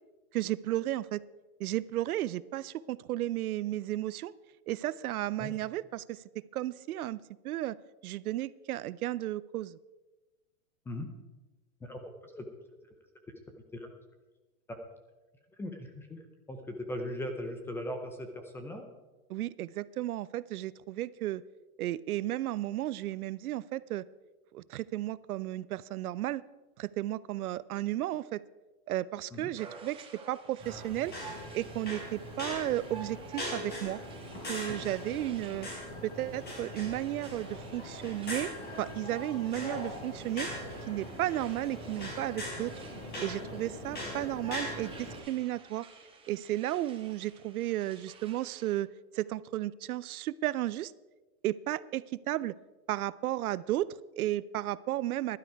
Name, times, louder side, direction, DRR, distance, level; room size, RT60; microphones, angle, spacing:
voice 1, 0.3-1.2 1.6-4.3 4.7-6.2 6.5-7.8 8.0-9.8 19.3-21.4 21.8-24.1 24.5-26.4 26.8-28.4 28.9-31.1 31.5-34.0 34.5-35.7 36.0-38.5 38.8-40.5 40.9-42.7 43.2-45.9 46.3-48.9 49.1-50.9 51.4-52.6 52.9-55.4, right 14 dB, 75° right, 20 dB, 0.6 m, -34 dB
voice 2, 11.8-12.5 13.8-13.9 14.7-14.8 15.6-16.2 16.5-18.8 29.3-29.5 44.0-44.1, left 1 dB, 5° left, 5 dB, 0.5 m, -39 dB
sound 1, 29.6-48.8, right 5 dB, 10° right, 1.5 m, -52 dB
sound 2, 30.6-45.2, left 1 dB, 20° left, 4.4 m, -40 dB
15.0 x 12.0 x 4.6 m, 1.2 s
hypercardioid pair, 150°, 44 cm